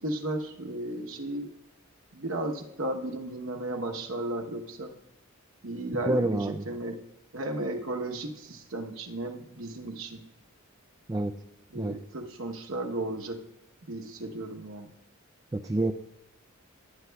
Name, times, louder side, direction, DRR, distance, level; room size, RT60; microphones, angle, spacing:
voice 1, 0.0-1.5 2.1-5.0 5.6-7.0 7.3-10.2 11.7-13.4 13.9-14.9, right 1 dB, 60° right, 4 dB, 1.0 m, -34 dB
voice 2, 6.1-6.7 11.1-11.3 11.7-12.0 15.5-15.9, right 2 dB, 15° right, 6 dB, 0.3 m, -27 dB
16.5 x 9.5 x 2.3 m, 0.83 s
head